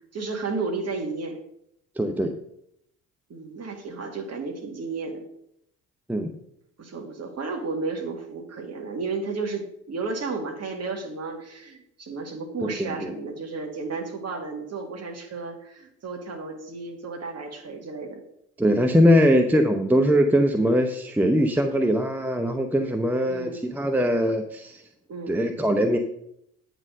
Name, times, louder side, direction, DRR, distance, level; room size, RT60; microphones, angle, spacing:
voice 1, 0.1-1.4 3.3-5.2 6.8-18.2 23.3-23.6 25.1-25.4, right 4 dB, 40° right, 3 dB, 2.1 m, -33 dB
voice 2, 2.0-2.3 6.1-6.3 12.6-13.1 18.6-24.8 25.3-26.0, equal, 5° right, 6 dB, 0.7 m, -21 dB
8.9 x 4.1 x 6.4 m, 0.75 s
hypercardioid pair, 55°, 41 cm